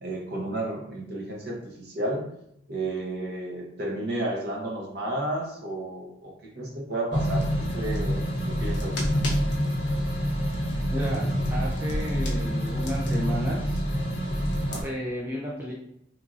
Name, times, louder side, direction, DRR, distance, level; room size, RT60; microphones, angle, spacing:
voice 1, 0.0-2.3 2.7-7.5 7.7-9.1 12.3-12.5 14.6-14.8, right 1 dB, 50° right, -1 dB, 0.7 m, -32 dB
sound 1, 7.1-14.8, equal, 55° left, 0.6 m, -27 dB
voice 2, 10.9-11.2 11.5-13.8 14.8-15.7, equal, 10° right, -6 dB, 0.3 m, -33 dB
3.0 x 2.5 x 2.4 m, 0.75 s
head